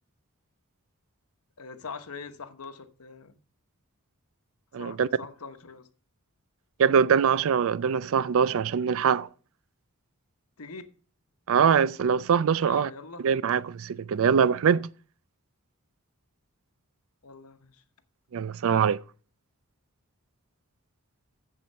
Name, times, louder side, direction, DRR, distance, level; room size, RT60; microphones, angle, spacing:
voice 1, 1.6-3.4 4.8-5.9 10.6-10.9 12.6-13.2 17.2-17.8, left 4 dB, 75° left, 1.0 m, -42 dB
voice 2, 4.7-5.1 6.8-9.3 11.5-12.9 13.2-14.9 18.3-19.0, right 7 dB, 65° right, 0.4 m, -23 dB
7.6 x 7.3 x 5.5 m
head